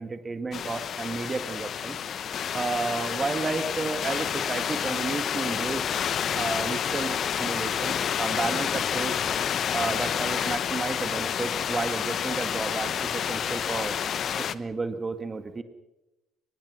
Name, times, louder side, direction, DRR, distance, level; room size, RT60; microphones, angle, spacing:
voice 1, 0.0-2.0 2.5-5.9 6.3-9.3 9.7-13.9 14.4-15.6, right 3 dB, 30° right, 9 dB, 1.9 m, -32 dB
sound 1, 0.5-14.5, left 8 dB, 55° left, 1.0 m, -29 dB
24.5 x 20.5 x 6.2 m, 1.0 s
hypercardioid pair, 65°, 0 cm